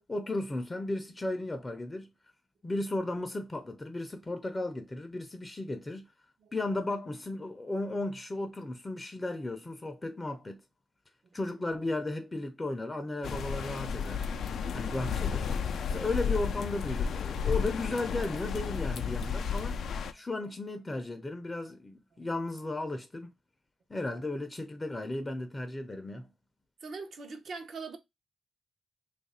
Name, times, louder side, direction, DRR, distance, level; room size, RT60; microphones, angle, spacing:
voice 1, 0.1-2.1 2.6-6.1 6.5-10.6 11.3-14.2 14.7-15.5 15.9-19.8 20.1-23.3 23.9-26.3, left 2 dB, 20° left, 0.5 m, -35 dB
sound 1, 13.2-20.1, left 6 dB, 75° left, 0.4 m, -32 dB
voice 2, 26.8-28.0, right 4 dB, 65° right, 0.7 m, -41 dB
2.9 x 2.4 x 4.1 m
wide cardioid pair, 115°, 0 cm